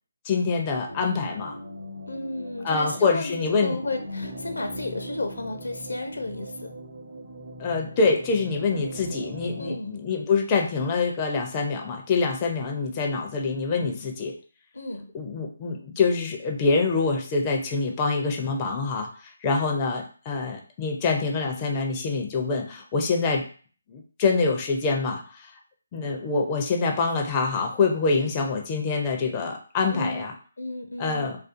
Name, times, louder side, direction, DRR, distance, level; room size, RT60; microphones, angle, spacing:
voice 1, 0.2-1.6 2.6-3.8 7.6-14.3 15.1-23.5 23.9-25.5 25.9-30.3 31.0-31.4, left 4 dB, 20° left, 1 dB, 0.4 m, -25 dB
sound 1, 0.9-9.8, equal, 45° right, 0.8 m, -40 dB
voice 2, 2.1-6.7 9.6-9.9 14.7-15.1 29.9-30.3 30.6-31.3, left 2 dB, 75° left, 5 dB, 0.6 m, -33 dB
2.4 x 2.3 x 2.5 m, 0.41 s
figure-of-eight pair, 155°, 0 cm